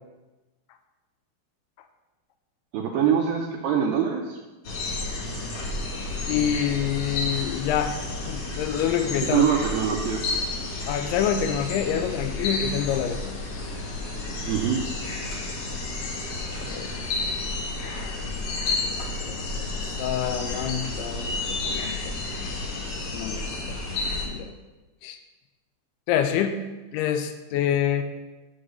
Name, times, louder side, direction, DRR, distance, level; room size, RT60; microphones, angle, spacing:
voice 1, 2.7-4.4 9.3-10.2 14.5-14.8, right 8 dB, 80° right, 1 dB, 2.1 m, -23 dB
sound 1, 4.6-24.3, left 2 dB, 65° left, 1.4 m, -31 dB
voice 2, 6.3-8.0 8.3-9.4 10.9-13.2 16.6-16.9 17.9-18.1 18.8-19.4 19.8-22.0 23.1-23.5 24.2-24.5 25.0-25.2 26.1-26.6 26.9-28.0, left 9 dB, 85° left, 8 dB, 2.5 m, -27 dB
6.6 x 6.2 x 6.7 m, 1.1 s
omnidirectional pair, 4.7 m